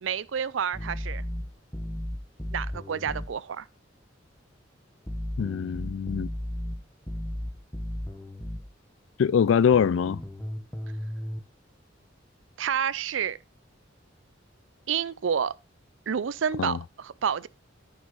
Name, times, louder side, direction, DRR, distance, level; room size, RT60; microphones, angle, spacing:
voice 1, 0.0-1.2 2.5-3.7 12.6-13.4 14.9-15.5 16.1-17.5, right 7 dB, 80° right, 0.5 m, -29 dB
sound 1, 0.7-3.3 5.1-8.7 9.7-11.4, left 1 dB, 10° left, 1.3 m, -35 dB
voice 2, 5.4-6.3 9.2-10.2 16.6-16.8, left 7 dB, 80° left, 0.4 m, -23 dB
9.7 x 6.2 x 3.9 m
head